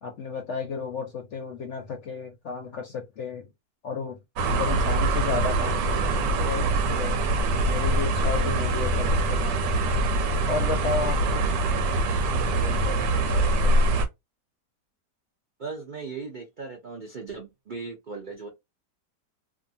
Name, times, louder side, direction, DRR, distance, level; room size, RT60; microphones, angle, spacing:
voice 1, 0.0-3.5 3.8-4.2 4.5-7.2 7.6-9.6 10.5-11.6 12.3-13.9, left 4 dB, 65° left, 0.7 m, -33 dB
sound 1, 4.4-14.1, right 2 dB, 90° right, 1.3 m, -24 dB
voice 2, 15.6-18.5, right 4 dB, 70° right, 0.4 m, -37 dB
2.7 x 2.5 x 2.6 m
omnidirectional pair, 1.8 m